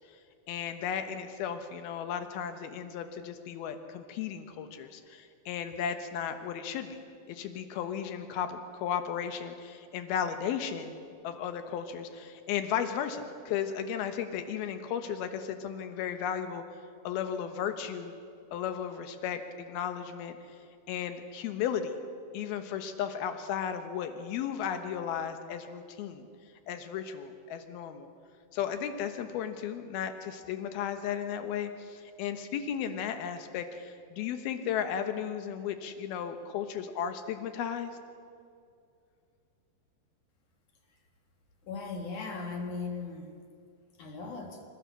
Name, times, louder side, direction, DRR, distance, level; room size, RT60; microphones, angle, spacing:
voice 1, 0.5-7.0 7.3-11.0 11.2-16.6 17.0-18.1 18.5-20.4 20.9-22.0 22.3-26.3 26.7-28.1 28.5-38.0, left 8 dB, 75° left, 8 dB, 3.0 m, -35 dB
voice 2, 41.6-43.4 44.0-44.6, left 4 dB, 60° left, 3 dB, 2.8 m, -38 dB
26.5 x 15.0 x 6.7 m, 2.4 s
omnidirectional pair, 4.6 m